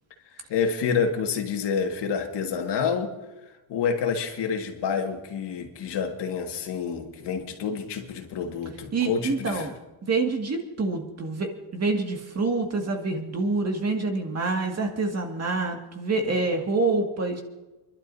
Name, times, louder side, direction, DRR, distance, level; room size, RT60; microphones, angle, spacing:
voice 1, 0.5-3.1 3.7-9.7, left 6 dB, 60° left, 3 dB, 2.0 m, -28 dB
voice 2, 8.9-9.7 10.0-17.4, right 3 dB, 30° right, 3 dB, 2.1 m, -27 dB
29.5 x 12.0 x 2.7 m, 1.1 s
cardioid pair, 125°, 48 cm